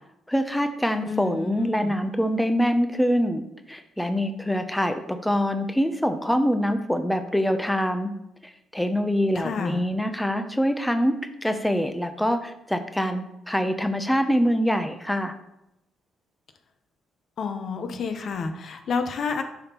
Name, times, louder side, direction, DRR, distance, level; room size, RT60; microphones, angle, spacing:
voice 1, 0.3-8.1 8.4-15.3, equal, 5° left, 7 dB, 0.5 m, -25 dB
voice 2, 1.1-2.0 9.3-9.8 17.4-19.4, left 5 dB, 60° left, 7 dB, 0.7 m, -30 dB
10.5 x 3.6 x 2.9 m, 0.88 s
cardioid pair, 90°, 0 cm